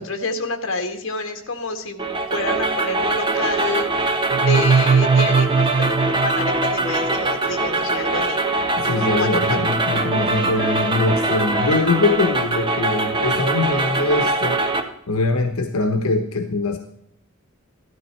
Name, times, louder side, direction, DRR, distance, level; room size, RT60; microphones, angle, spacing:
voice 1, 0.0-8.4 9.0-9.3, left 3 dB, 60° left, 5 dB, 1.8 m, -28 dB
sound 1, 2.0-14.8, right 2 dB, 25° right, 1.1 m, -22 dB
sound 2, 4.3-7.1, right 5 dB, 85° right, 0.5 m, -19 dB
voice 2, 8.8-14.6 15.1-16.8, left 3 dB, 80° left, 6 dB, 1.1 m, -22 dB
14.5 x 12.5 x 4.5 m, 0.70 s
head